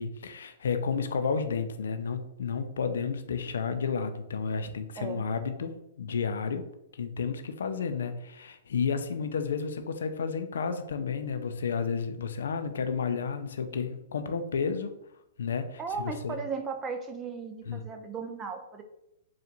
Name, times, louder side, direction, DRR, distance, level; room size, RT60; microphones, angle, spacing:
voice 1, 0.0-6.7 6.9-14.9 15.4-16.4 17.7-17.8, left 5 dB, 75° left, 8 dB, 0.5 m, -31 dB
voice 2, 15.8-18.8, right 5 dB, 20° right, 5 dB, 0.6 m, -36 dB
4.4 x 2.4 x 3.9 m, 0.84 s
hypercardioid pair, 125°, 0 cm